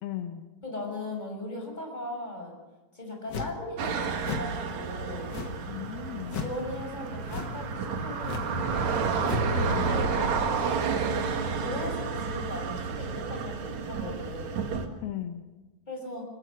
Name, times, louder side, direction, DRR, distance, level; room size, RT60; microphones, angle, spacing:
voice 1, 0.0-0.5 5.7-6.4 9.5-9.9 15.0-15.4, left 11 dB, 80° left, 6 dB, 3.2 m, -36 dB
voice 2, 0.6-2.6 2.9-5.4 6.3-9.0 9.8-10.6 11.1-11.3 11.5-14.7 15.9-16.2, left 2 dB, 10° left, 1 dB, 6.1 m, -38 dB
sound 1, 3.3-3.7 4.2-4.6 5.3-5.7 6.3-6.6 7.3-7.6 8.2-8.6 9.2-9.6, left 6 dB, 60° left, 1.1 m, -36 dB
sound 2, 3.8-14.9, right 5 dB, 55° right, 2.7 m, -30 dB
28.0 x 21.0 x 6.4 m, 1.2 s
omnidirectional pair, 4.4 m